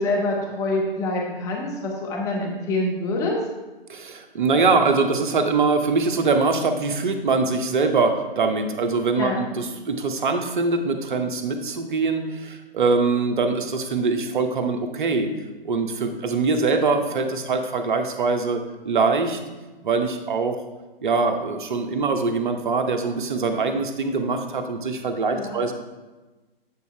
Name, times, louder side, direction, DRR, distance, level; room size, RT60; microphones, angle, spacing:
voice 1, 0.0-3.4 9.1-9.4 25.2-25.6, left 2 dB, 10° left, -1 dB, 0.7 m, -26 dB
voice 2, 3.9-15.3 15.6-19.4 19.8-20.6 21.0-25.7, right 4 dB, 55° right, 6 dB, 0.9 m, -23 dB
8.5 x 4.0 x 4.4 m, 1.2 s
figure-of-eight pair, 130°, 30 cm